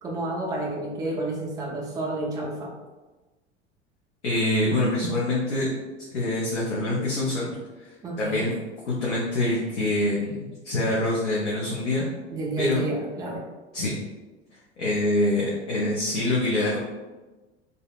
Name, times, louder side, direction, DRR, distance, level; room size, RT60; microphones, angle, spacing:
voice 1, 0.0-2.7 8.0-8.5 12.3-13.4, right 2 dB, 10° right, -2 dB, 0.4 m, -30 dB
voice 2, 4.2-5.7 6.1-7.5 7.8-7.9 8.2-8.5 8.9-12.1 12.6-12.8 13.7-14.0 14.8-16.8, left 1 dB, 85° left, -6 dB, 0.6 m, -25 dB
2.6 x 2.1 x 2.3 m, 1.2 s
figure-of-eight pair, 80°, 35 cm